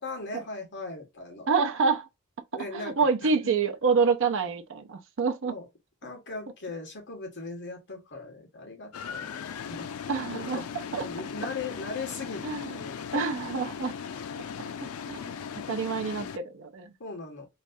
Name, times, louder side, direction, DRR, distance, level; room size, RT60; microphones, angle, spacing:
voice 1, 0.0-1.5 2.5-3.5 5.5-5.6 6.0-9.9 10.2-10.7 11.0-13.0 17.0-17.5, left 3 dB, 55° left, 1.3 m, -39 dB
voice 2, 1.5-2.1 2.7-5.5 10.1-10.6 10.9-11.0 12.4-12.8 13.1-13.9 14.8-15.2 15.7-16.9, right 5 dB, 65° right, 0.5 m, -27 dB
sound 1, 8.9-16.4, left 7 dB, 85° left, 0.4 m, -38 dB
3.1 x 2.3 x 2.5 m
head